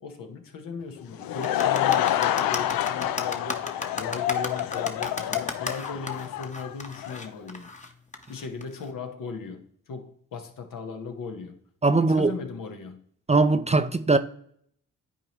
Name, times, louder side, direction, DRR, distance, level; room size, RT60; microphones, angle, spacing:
voice 1, 0.0-3.6 4.0-7.7 8.3-11.6 11.9-13.0, left 5 dB, 70° left, 1.2 m, -37 dB
Laughter / Crowd, 1.0-7.3, left 12 dB, 85° left, 0.5 m, -27 dB
sound 1, 1.4-8.9, left 2 dB, 20° left, 1.0 m, -35 dB
voice 2, 11.8-12.3 13.3-14.2, right 3 dB, 20° right, 0.5 m, -20 dB
9.9 x 4.3 x 3.0 m
supercardioid pair, 50°, 34 cm